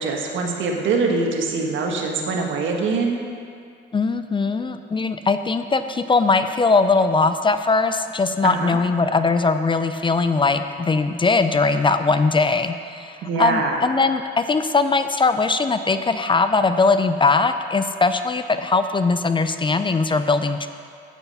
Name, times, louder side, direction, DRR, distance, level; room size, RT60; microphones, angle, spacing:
voice 1, 0.0-3.2 8.4-8.8 13.2-13.8, right 4 dB, 75° right, 1 dB, 1.5 m, -23 dB
voice 2, 3.9-20.7, left 4 dB, 25° left, 10 dB, 0.5 m, -20 dB
9.0 x 8.1 x 5.5 m, 2.3 s
cardioid pair, 90°, 20 cm